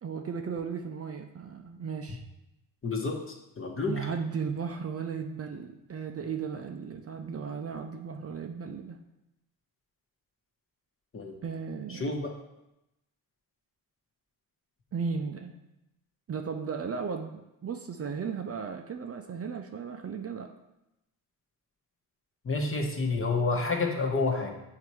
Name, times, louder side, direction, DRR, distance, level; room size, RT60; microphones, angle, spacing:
voice 1, 0.0-2.2 3.9-9.0 11.4-12.2 14.9-15.5 16.3-20.5, right 6 dB, 35° right, 4 dB, 0.6 m, -35 dB
voice 2, 2.8-4.1 11.1-11.3 11.9-12.4 22.4-24.5, left 3 dB, 30° left, 2 dB, 1.2 m, -29 dB
7.7 x 2.8 x 4.7 m, 0.90 s
cardioid pair, 70°, 41 cm